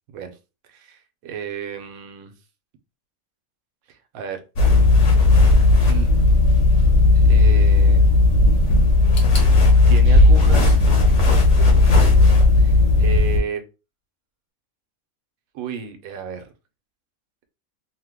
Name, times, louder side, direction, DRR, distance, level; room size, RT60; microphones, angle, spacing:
voice 1, 0.7-2.3 3.9-4.4 5.9-6.1 7.1-8.1 9.9-10.8 11.6-13.6 15.5-16.5, right 7 dB, 80° right, 7 dB, 1.1 m, -33 dB
sound 1, 4.6-13.4, left 3 dB, 60° left, 1.1 m, -14 dB
sound 2, 14.3-14.4, left 2 dB, 35° left, 1.0 m, -42 dB
2.8 x 2.1 x 3.4 m, 0.30 s
omnidirectional pair, 1.5 m